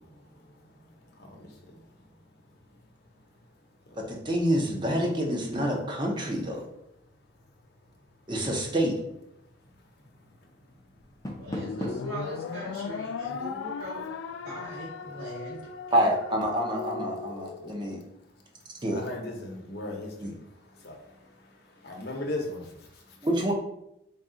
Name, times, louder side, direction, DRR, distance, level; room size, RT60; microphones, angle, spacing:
voice 1, 4.1-6.6 8.3-8.9 15.9-18.0 18.8-19.0 20.2-20.3 23.2-23.5, equal, 25° right, 0 dB, 0.7 m, -27 dB
Door, 11.0-12.2, left 1 dB, 20° left, 0.5 m, -36 dB
voice 2, 11.4-14.0 14.4-15.6 15.9-16.1, right 1 dB, 90° right, -7 dB, 1.0 m, -41 dB
sound 1, 11.5-18.0, left 5 dB, 85° left, 0.3 m, -37 dB
voice 3, 18.9-20.3 20.8-21.0 21.8-22.6, left 2 dB, 55° left, 1 dB, 0.7 m, -35 dB
4.0 x 2.3 x 3.7 m, 0.82 s
head